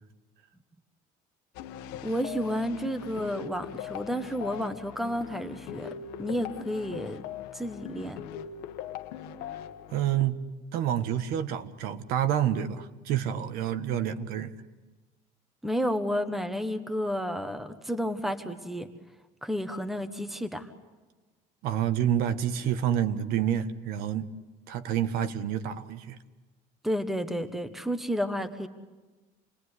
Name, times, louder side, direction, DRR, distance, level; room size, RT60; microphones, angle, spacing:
sound 1, 1.5-10.3, left 9 dB, 90° left, 1.4 m, -41 dB
voice 1, 2.0-5.9 6.2-7.2 7.5-8.2 15.6-18.9 19.4-20.7 26.8-28.7, equal, ahead, 1.2 m, -31 dB
voice 2, 9.9-10.4 10.7-14.5 21.6-24.3 24.7-26.2, right 10 dB, 65° right, 1.5 m, -28 dB
28.5 x 20.5 x 9.8 m
cardioid pair, 175°, 17 cm